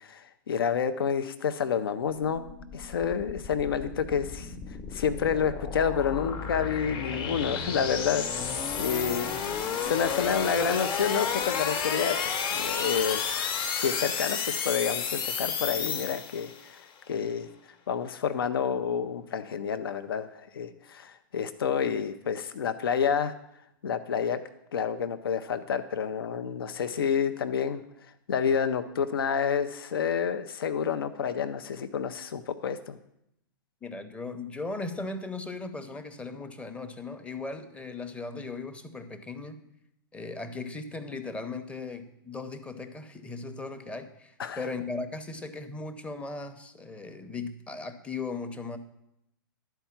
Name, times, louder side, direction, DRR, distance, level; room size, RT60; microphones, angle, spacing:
voice 1, 0.0-2.4 2.7-4.5 4.9-9.3 9.8-17.5 17.9-23.3 23.8-24.4 24.7-27.8 28.3-33.0 44.4-44.7, left 7 dB, 85° left, 11 dB, 0.5 m, -29 dB
sound 1, 2.3-16.7, left 6 dB, 40° left, 0.9 m, -32 dB
voice 2, 33.8-39.6 40.1-48.8, left 3 dB, 10° left, 8 dB, 0.6 m, -37 dB
11.5 x 4.5 x 5.7 m, 0.82 s
hypercardioid pair, 130°, 12 cm